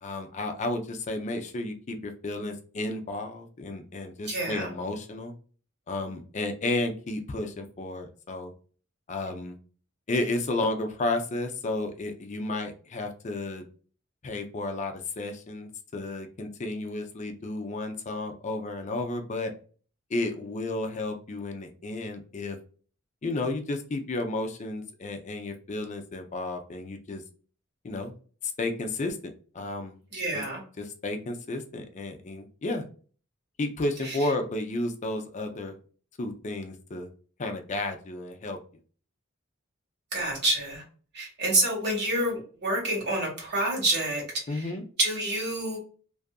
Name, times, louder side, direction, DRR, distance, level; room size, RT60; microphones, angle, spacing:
voice 1, 0.0-5.3 5.9-8.5 9.1-9.5 10.1-13.6 14.2-19.5 20.1-22.6 23.2-27.2 27.8-28.1 28.6-30.0 30.3-30.4 30.8-32.8 33.6-35.7 36.2-37.1 37.4-38.6 44.5-44.8, left 2 dB, 35° left, 5 dB, 0.4 m, -32 dB
voice 2, 4.3-4.7 30.1-30.6 34.0-34.3 40.1-40.8 41.1-44.7 45.0-45.8, right 1 dB, 55° right, -1 dB, 1.3 m, -28 dB
2.6 x 2.4 x 2.3 m, 0.40 s
head